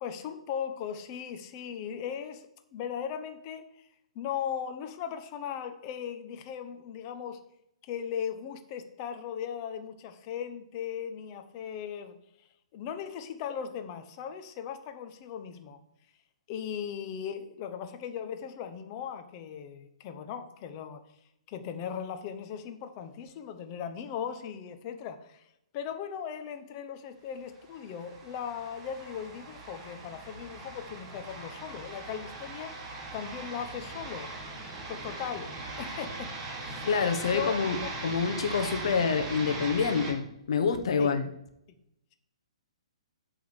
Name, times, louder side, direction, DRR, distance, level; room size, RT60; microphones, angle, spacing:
voice 1, 0.0-3.9 4.1-7.4 7.8-12.2 12.7-15.8 16.5-21.0 21.5-25.5 25.7-32.7 33.1-34.3 34.9-37.0 37.2-37.9 41.0-41.1, left 8 dB, 35° left, 8 dB, 1.0 m, -38 dB
sound 1, 27.6-40.1, right 2 dB, 25° right, 2.3 m, -40 dB
voice 2, 36.8-37.8 38.0-41.3, left 5 dB, 60° left, 7 dB, 1.2 m, -27 dB
8.5 x 3.8 x 6.5 m, 0.79 s
hypercardioid pair, 135°, 3 cm